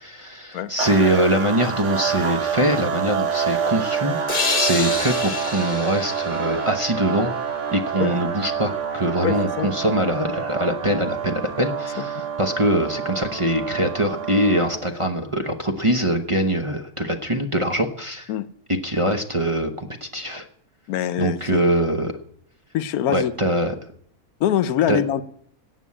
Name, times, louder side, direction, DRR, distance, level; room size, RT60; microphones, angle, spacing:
voice 1, 0.0-7.3 7.7-18.3 18.8-20.4 21.2-22.1 23.1-23.7 24.9-25.0, right 1 dB, 25° right, 0.9 m, -23 dB
sound 1, 0.8-15.0, right 7 dB, 55° right, 1.4 m, -27 dB
sound 2, 4.3-7.8, left 4 dB, 25° left, 1.6 m, -28 dB
voice 2, 9.2-9.7 12.0-12.1 18.3-18.5 20.9-21.8 22.7-23.3 24.4-25.2, left 10 dB, 80° left, 1.2 m, -24 dB
17.0 x 6.2 x 8.6 m
omnidirectional pair, 1.5 m